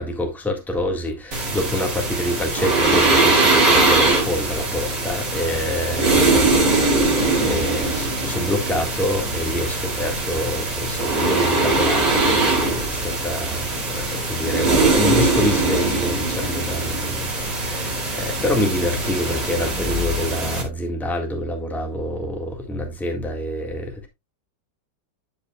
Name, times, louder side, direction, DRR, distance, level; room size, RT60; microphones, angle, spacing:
voice 1, 0.0-17.3 17.5-24.1, left 1 dB, ahead, 1.5 m, -27 dB
sound 1, 1.3-20.6, right 2 dB, 65° right, 2.9 m, -21 dB
12.5 x 5.2 x 2.3 m
omnidirectional pair, 2.0 m